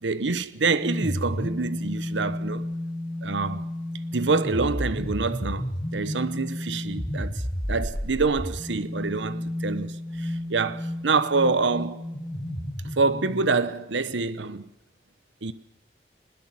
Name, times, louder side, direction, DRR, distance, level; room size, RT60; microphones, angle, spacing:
voice 1, 0.0-2.7 3.2-3.7 4.1-12.1 12.8-14.7 15.4-15.5, right 4 dB, 85° right, 1.0 m, -26 dB
sound 1, 0.8-13.7, left 1 dB, 20° left, 1.8 m, -32 dB
21.5 x 20.5 x 7.6 m
head